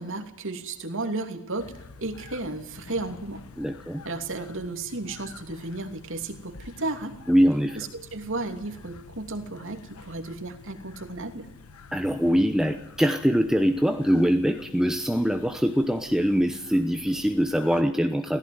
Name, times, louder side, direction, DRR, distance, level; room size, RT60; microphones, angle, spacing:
voice 1, 0.0-1.7 2.0-3.4 4.0-7.2 7.8-11.5, right 2 dB, 65° right, 6 dB, 2.8 m, -33 dB
sound 1, 1.6-17.8, left 4 dB, 90° left, 1.2 m, -48 dB
voice 2, 3.6-4.0 7.3-7.8 11.9-18.4, equal, 5° right, 6 dB, 0.9 m, -23 dB
17.5 x 15.5 x 9.5 m, 0.81 s
head